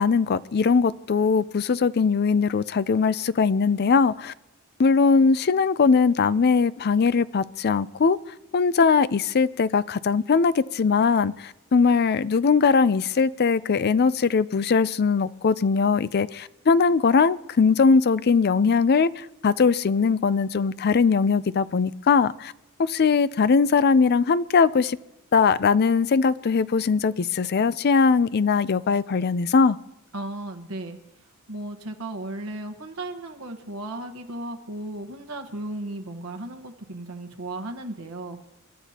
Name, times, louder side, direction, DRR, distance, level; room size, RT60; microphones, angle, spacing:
voice 1, 0.0-4.3 4.8-8.2 8.5-22.5 22.9-25.0 25.3-29.8, left 5 dB, 50° left, 17 dB, 0.4 m, -20 dB
voice 2, 30.1-31.0 31.5-38.4, right 1 dB, 80° right, 5 dB, 1.3 m, -35 dB
29.5 x 13.0 x 2.9 m, 0.96 s
head